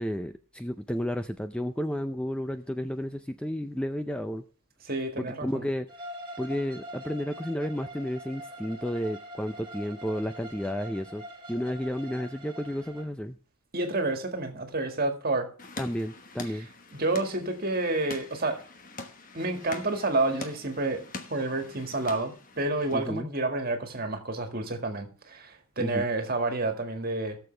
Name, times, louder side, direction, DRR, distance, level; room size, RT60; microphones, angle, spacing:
voice 1, 0.0-4.4 5.2-5.9 6.4-11.2 11.5-13.4 15.8-16.7 22.9-23.3 25.8-26.1, equal, 5° left, 8 dB, 0.4 m, -32 dB
voice 2, 4.8-5.7 13.7-15.5 16.5-16.6 16.9-18.6 19.3-21.0 21.3-27.4, right 2 dB, 45° right, 5 dB, 1.9 m, -29 dB
Bowed string instrument, 5.9-13.1, equal, 25° right, 1.8 m, -44 dB
sound 1, 15.6-23.0, left 3 dB, 40° left, 1.2 m, -44 dB
17.0 x 7.0 x 3.3 m, 0.41 s
head